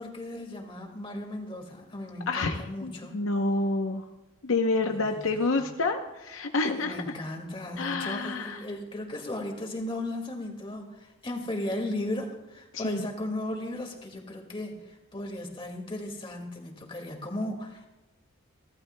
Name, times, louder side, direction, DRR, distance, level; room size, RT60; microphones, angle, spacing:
voice 1, 0.0-3.2 4.8-5.3 5.6-5.7 6.7-17.9, left 1 dB, 25° left, 2 dB, 2.0 m, -36 dB
voice 2, 2.3-4.0 4.4-7.0 7.8-8.6 12.7-13.0, left 3 dB, 70° left, 4 dB, 0.8 m, -28 dB
29.5 x 12.0 x 2.2 m, 1.1 s
head